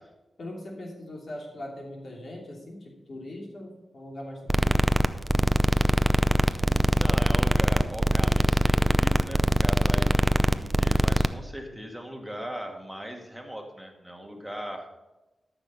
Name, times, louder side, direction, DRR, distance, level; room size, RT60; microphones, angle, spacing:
voice 1, 0.4-4.9 11.7-11.8, left 1 dB, 65° left, 0 dB, 2.8 m, -41 dB
sound 1, 4.5-11.3, right 1 dB, 20° right, 0.6 m, -22 dB
voice 2, 7.0-14.9, equal, 5° right, 2 dB, 1.9 m, -38 dB
13.0 x 6.2 x 5.6 m, 1.0 s
cardioid pair, 55°, 0 cm